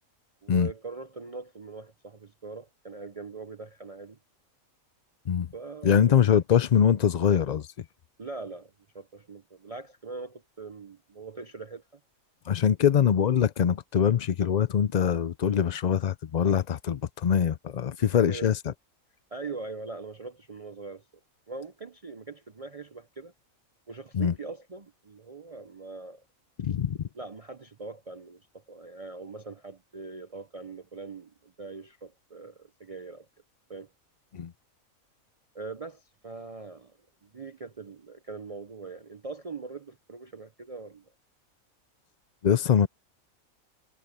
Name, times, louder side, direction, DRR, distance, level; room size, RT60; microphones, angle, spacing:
voice 1, 0.4-4.2 5.5-6.4 8.2-12.0 18.0-18.5 19.3-21.0 21.5-23.3 23.9-26.2 27.1-33.3 33.7-33.9 35.5-37.0 37.2-41.1, right 4 dB, 40° right, 0.5 m, -42 dB
voice 2, 5.8-7.7 12.5-18.6 24.1-24.3 26.6-27.0 34.3-34.5 42.4-42.9, left 8 dB, 70° left, 0.4 m, -23 dB
omnidirectional pair, 1.4 m